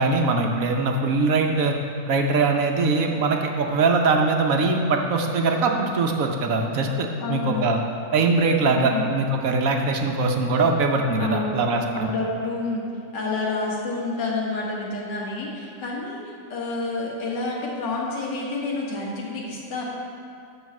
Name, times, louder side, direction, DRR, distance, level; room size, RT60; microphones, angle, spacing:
voice 1, 0.0-1.8 2.1-7.8 8.1-12.1, right 3 dB, 60° right, 2 dB, 1.1 m, -22 dB
voice 2, 7.2-7.7 8.7-9.1 11.2-11.7 12.1-12.9 13.1-19.8, left 3 dB, 90° left, -3 dB, 2.1 m, -29 dB
11.5 x 4.0 x 7.1 m, 2.4 s
omnidirectional pair, 1.8 m